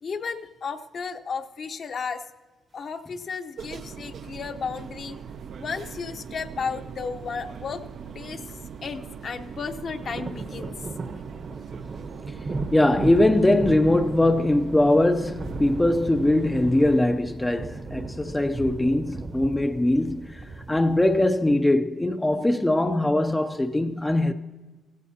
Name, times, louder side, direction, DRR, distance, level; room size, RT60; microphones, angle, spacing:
voice 1, 0.0-2.2 2.7-5.2 5.6-10.8, left 5 dB, 50° left, 0.9 m, -34 dB
sound 1, 3.6-17.0, right 7 dB, 60° right, 0.5 m, -40 dB
sound 2, 9.7-21.4, right 3 dB, 35° right, 0.9 m, -36 dB
voice 2, 12.7-24.3, left 1 dB, 10° left, 0.5 m, -21 dB
16.0 x 15.5 x 2.8 m
cardioid pair, 90°, 0 cm